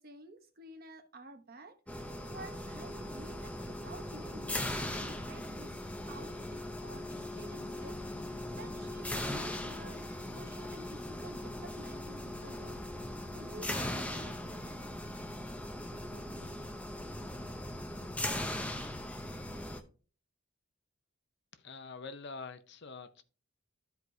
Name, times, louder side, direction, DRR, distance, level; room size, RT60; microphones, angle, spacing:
voice 1, 0.0-5.7 6.1-8.3 8.5-14.4 15.9-16.6, right 1 dB, 40° right, 0.9 m, -51 dB
sound 1, 1.9-19.8, left 1 dB, 5° left, 0.6 m, -39 dB
voice 2, 21.6-23.2, left 4 dB, 50° left, 0.6 m, -45 dB
13.0 x 4.6 x 2.7 m
head